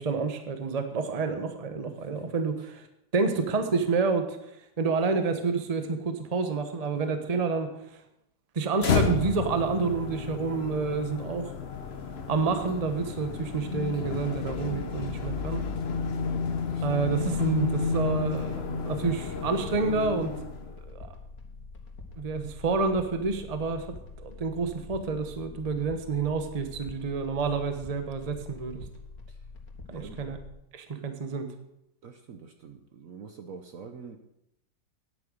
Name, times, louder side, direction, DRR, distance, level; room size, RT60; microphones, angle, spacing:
voice 1, 0.0-2.9 3.1-4.4 4.8-7.7 8.5-11.5 12.3-15.6 16.8-20.3 20.6-21.1 22.2-23.9 24.2-28.8 29.9-30.4 30.7-31.5, right 4 dB, 25° right, 7 dB, 0.9 m, -29 dB
voice 2, 2.0-2.7 3.4-4.0 16.4-17.0 21.4-21.7 29.3-29.4 29.9-30.2 32.0-34.2, right 6 dB, 55° right, 6 dB, 1.1 m, -46 dB
sound 1, 8.8-20.8, left 5 dB, 45° left, 0.9 m, -31 dB
sound 2, 17.1-30.5, left 3 dB, 75° left, 2.2 m, -45 dB
9.7 x 9.0 x 6.4 m, 0.81 s
omnidirectional pair, 2.0 m